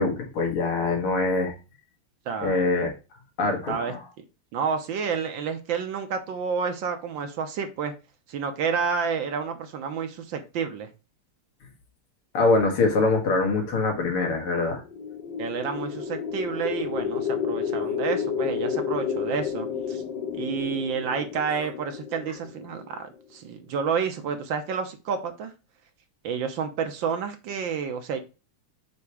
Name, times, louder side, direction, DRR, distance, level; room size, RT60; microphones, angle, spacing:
voice 1, 0.0-1.5 2.4-2.9 3.4-4.0 12.3-14.8, left 3 dB, 80° left, 1 dB, 2.6 m, -23 dB
voice 2, 2.3-2.6 3.7-3.9 4.5-7.9 8.3-10.9 15.4-20.0 20.3-25.5 26.2-28.2, right 6 dB, 70° right, 7 dB, 1.4 m, -30 dB
sound 1, 14.8-22.9, left 7 dB, 60° left, 1.4 m, -31 dB
7.0 x 2.9 x 4.8 m, 0.29 s
omnidirectional pair, 2.4 m